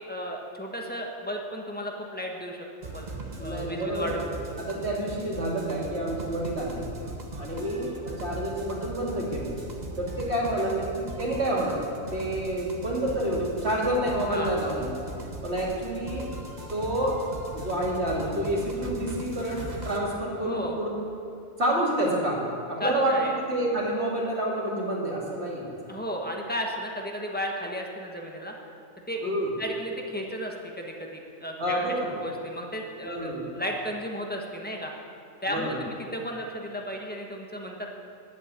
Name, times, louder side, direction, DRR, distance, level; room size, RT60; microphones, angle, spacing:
voice 1, 0.0-3.1 3.3-4.2 14.3-14.6 20.4-20.8 22.8-23.4 25.9-28.5 29.1-29.3 29.6-31.8 32.2-34.9 35.4-37.9, equal, 10° left, 0 dB, 1.3 m, -34 dB
sound 1, 2.8-20.0, right 2 dB, 35° right, 1.3 m, -39 dB
voice 2, 3.4-4.2 4.7-6.9 7.4-9.5 10.0-15.0 15.4-16.3 16.7-17.2 17.5-20.9 21.6-22.4 22.7-23.2 23.5-25.9 29.2-29.5 31.6-32.1 33.0-33.4 35.5-35.8, right 1 dB, 55° right, -4 dB, 2.8 m, -28 dB
11.0 x 8.2 x 8.3 m, 2.8 s
omnidirectional pair, 1.3 m